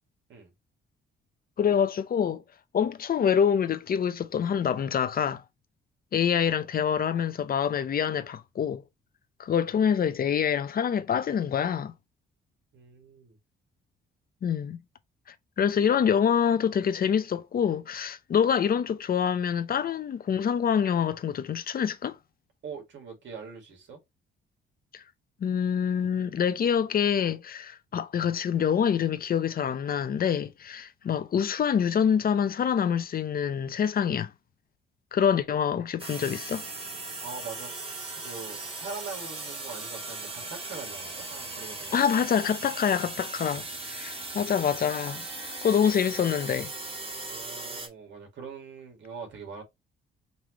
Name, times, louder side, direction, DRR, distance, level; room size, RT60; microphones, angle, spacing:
voice 1, 1.6-2.4 2.7-5.4 6.1-8.8 9.4-11.9 14.4-14.8 15.6-22.2 24.9-25.0 25.4-34.3 35.1-36.7 41.9-45.2 45.6-46.7, left 8 dB, 50° left, 0.7 m, -26 dB
voice 2, 12.7-13.4 22.6-24.0 37.2-42.2 47.2-49.6, right 5 dB, 70° right, 2.4 m, -42 dB
sound 1, 36.0-47.9, right 3 dB, 30° right, 1.6 m, -38 dB
5.4 x 3.1 x 3.0 m
cardioid pair, 90°, 20 cm